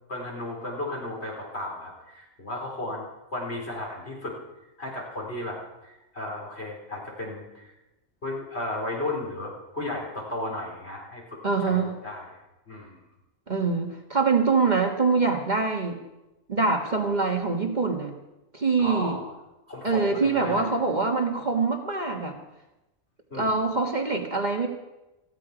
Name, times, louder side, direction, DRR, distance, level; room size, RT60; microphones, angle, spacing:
voice 1, 0.1-4.4 4.8-7.7 8.2-12.2 12.7-13.0 18.8-19.3 19.7-20.7 23.3-23.6, left 1 dB, 55° left, -2 dB, 4.7 m, -34 dB
voice 2, 11.4-11.9 13.5-16.0 16.5-18.1 18.5-19.2 19.8-22.4 23.3-24.7, right 4 dB, 35° right, 2 dB, 1.5 m, -24 dB
17.5 x 14.5 x 5.0 m, 1.0 s
omnidirectional pair, 1.3 m